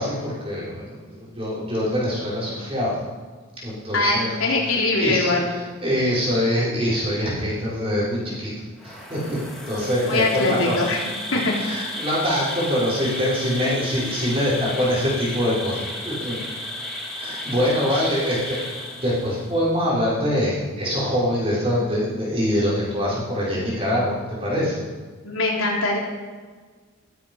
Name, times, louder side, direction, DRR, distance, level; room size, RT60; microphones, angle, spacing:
voice 1, 0.0-2.9 3.6-4.3 4.6-8.5 8.8-9.4 9.7-10.8 11.6-16.4 17.2-24.8, equal, 25° right, -7 dB, 6.1 m, -24 dB
voice 2, 3.9-5.5 10.1-11.0 11.3-11.5 25.2-26.0, left 2 dB, 80° left, -2 dB, 3.9 m, -22 dB
Insect, 8.8-19.5, left 1 dB, ahead, 3.4 m, -33 dB
15.0 x 15.0 x 5.8 m, 1.5 s
head